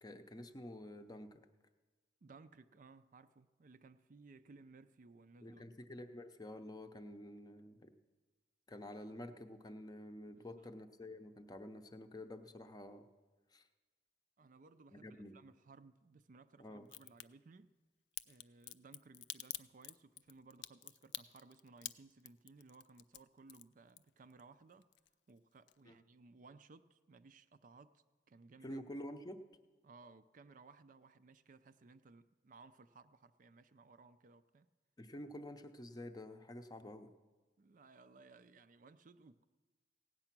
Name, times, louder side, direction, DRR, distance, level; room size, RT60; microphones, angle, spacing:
voice 1, 0.0-1.4 5.4-7.9 8.7-13.1 13.5-13.7 14.9-15.4 16.6-16.9 25.9-26.0 28.6-29.4 35.0-37.1, left 1 dB, 20° left, 0.6 m, -49 dB
voice 2, 2.2-5.7 10.3-10.7 14.4-17.7 18.3-24.9 25.3-28.8 29.8-34.7 37.6-39.4, right 3 dB, 45° right, 0.4 m, -61 dB
Crack, 16.8-17.2 18.2-24.4 24.7-25.4 25.7-25.8, left 14 dB, 70° left, 0.4 m, -47 dB
16.5 x 9.0 x 5.9 m
head